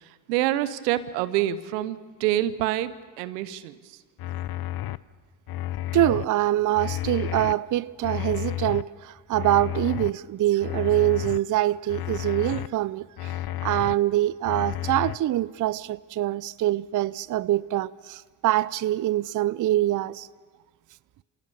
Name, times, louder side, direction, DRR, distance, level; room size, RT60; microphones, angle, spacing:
voice 1, 0.3-4.0, right 13 dB, 85° right, 0.9 m, -27 dB
sound 1, 4.2-5.0 5.5-6.2 6.7-7.6 8.0-8.8 9.3-10.1 10.6-11.4 11.9-12.7 13.2-13.9 14.4-15.2, left 14 dB, 50° left, 0.7 m, -31 dB
voice 2, 5.9-13.3 13.6-20.3, right 14 dB, 40° right, 0.6 m, -24 dB
27.5 x 17.5 x 6.9 m
hypercardioid pair, 50°, 48 cm